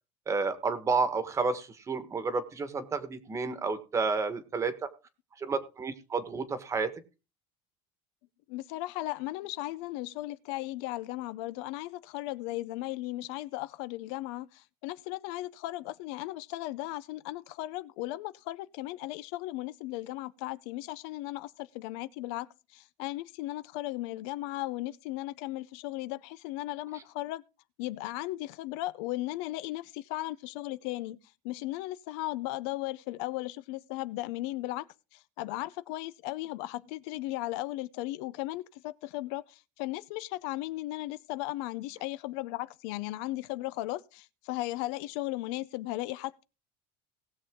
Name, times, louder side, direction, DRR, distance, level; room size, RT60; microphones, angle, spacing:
voice 1, 0.3-4.9 5.4-6.9, right 4 dB, 20° right, 1.3 m, -31 dB
voice 2, 8.5-27.4 27.8-31.2 31.4-34.9 35.1-46.4, left 17 dB, 75° left, 0.6 m, -36 dB
19.0 x 7.0 x 3.6 m
cardioid pair, 155°, 14 cm